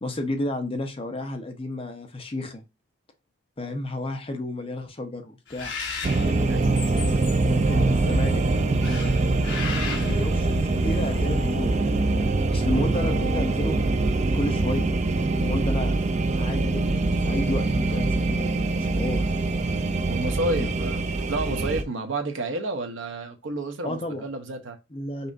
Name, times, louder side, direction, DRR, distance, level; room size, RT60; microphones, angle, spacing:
voice 1, 0.0-2.6 3.6-5.7 7.4-9.1 10.0-13.8 14.3-14.9 15.1-16.0 16.3-18.5 18.8-19.2 20.6-20.7 23.8-24.2 24.9-25.3, left 1 dB, 30° left, 0.7 m, -32 dB
Bird, 5.5-11.9, left 4 dB, 65° left, 1.1 m, -36 dB
sound 1, 6.0-21.8, right 2 dB, 35° right, 0.4 m, -24 dB
voice 2, 6.4-6.8 12.7-13.2 20.1-21.0 21.3-24.8, right 2 dB, 75° right, 0.8 m, -30 dB
5.4 x 2.5 x 2.5 m
head